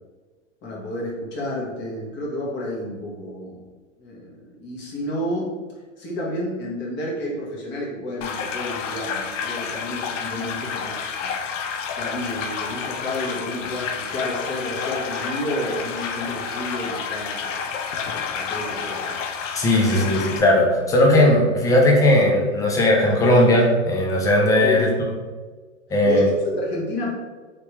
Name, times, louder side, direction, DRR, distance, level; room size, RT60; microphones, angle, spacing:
voice 1, 0.6-3.6 4.0-5.5 6.0-11.3 12.0-17.7 18.3-19.2 19.8-20.2 24.6-24.9 26.0-27.1, left 1 dB, 30° left, -3 dB, 1.1 m, -30 dB
sound 1, 8.2-20.4, left 6 dB, 70° left, 0.6 m, -30 dB
voice 2, 19.5-24.9 25.9-26.3, left 1 dB, 10° left, -1 dB, 0.4 m, -17 dB
3.3 x 3.1 x 2.9 m, 1.4 s
hypercardioid pair, 115°, 39 cm